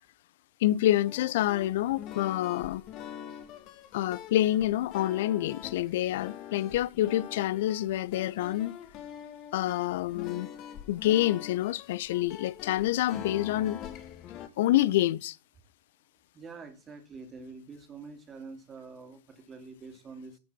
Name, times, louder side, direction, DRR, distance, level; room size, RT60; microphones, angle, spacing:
voice 1, 0.6-2.8 3.9-8.8 9.5-10.5 10.9-13.8 14.6-15.4, left 14 dB, 55° left, 0.4 m, -27 dB
sound 1, 1.0-14.5, left 10 dB, 40° left, 1.5 m, -44 dB
voice 2, 16.3-20.4, right 4 dB, 25° right, 2.5 m, -46 dB
12.5 x 5.7 x 6.0 m
figure-of-eight pair, 90°, 0 cm